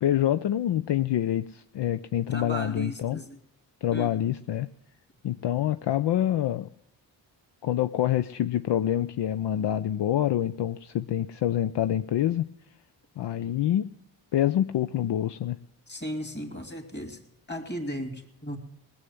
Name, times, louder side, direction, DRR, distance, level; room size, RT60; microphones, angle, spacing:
voice 1, 0.0-3.2 3.8-4.7 5.2-6.7 7.6-12.5 13.2-13.9 14.3-15.6, left 11 dB, 65° left, 11 dB, 0.6 m, -26 dB
voice 2, 2.3-3.4 3.9-4.2 15.9-18.6, equal, 20° left, 7 dB, 3.0 m, -36 dB
18.5 x 7.0 x 9.4 m, 0.82 s
cardioid pair, 55°, 46 cm